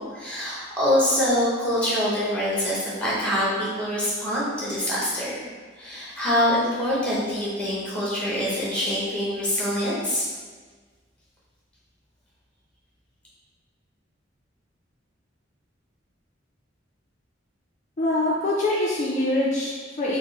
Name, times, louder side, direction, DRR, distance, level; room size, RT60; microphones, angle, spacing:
voice 1, 0.0-5.3 5.8-10.2, left 1 dB, 5° left, -7 dB, 1.0 m, -25 dB
voice 2, 18.0-20.2, left 1 dB, 40° left, -5 dB, 0.4 m, -24 dB
3.5 x 2.0 x 3.9 m, 1.5 s
head